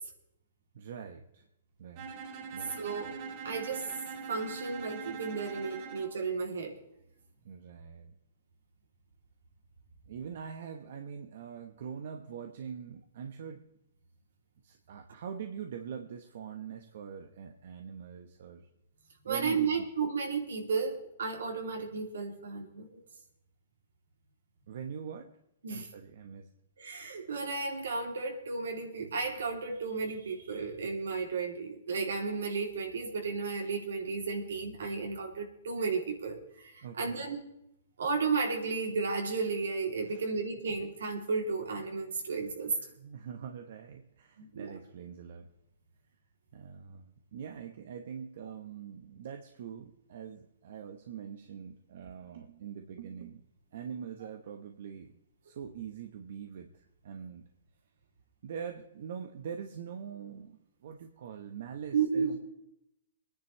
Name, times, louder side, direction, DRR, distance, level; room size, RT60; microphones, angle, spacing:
voice 1, 0.7-1.4 1.8-2.1 2.5-2.9 7.4-8.1 10.1-13.7 14.6-18.7 19.3-19.8 24.7-25.4 25.7-26.5 36.8-37.2 40.1-40.3 42.8-45.5 46.5-53.4 53.7-57.5 58.4-62.4, right 7 dB, 65° right, 5 dB, 1.3 m, -43 dB
Bowed string instrument, 2.0-6.2, right 5 dB, 40° right, 1.7 m, -42 dB
voice 2, 2.8-3.2 3.4-3.8 4.3-6.8 19.2-23.0 25.6-25.9 26.8-37.4 38.0-42.7 44.4-44.7 61.9-62.4, right 4 dB, 80° right, 1 dB, 3.1 m, -33 dB
23.5 x 10.5 x 3.3 m, 0.80 s
hypercardioid pair, 135°, 0 cm